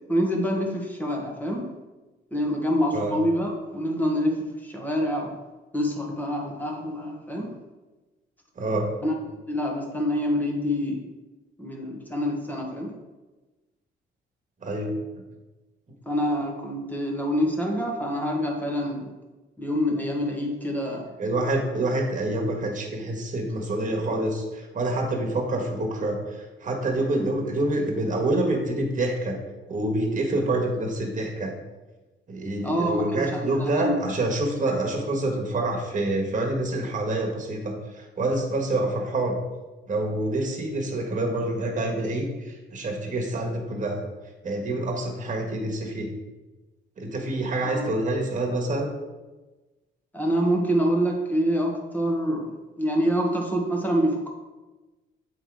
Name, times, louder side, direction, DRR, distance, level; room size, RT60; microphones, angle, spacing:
voice 1, 0.1-1.7 2.3-5.3 5.7-7.5 9.0-9.1 9.5-11.1 11.6-12.9 16.0-19.1 19.6-21.0 32.6-34.0 47.6-47.9 50.1-52.5 52.8-54.3, equal, 10° left, -1 dB, 1.6 m, -26 dB
voice 2, 8.5-8.9 14.6-15.0 21.2-29.4 29.7-31.5 32.3-39.4 39.9-44.0 44.4-46.1 47.0-48.9, right 2 dB, 40° right, 0 dB, 1.7 m, -27 dB
7.9 x 3.7 x 4.9 m, 1.2 s
cardioid pair, 90°, 20 cm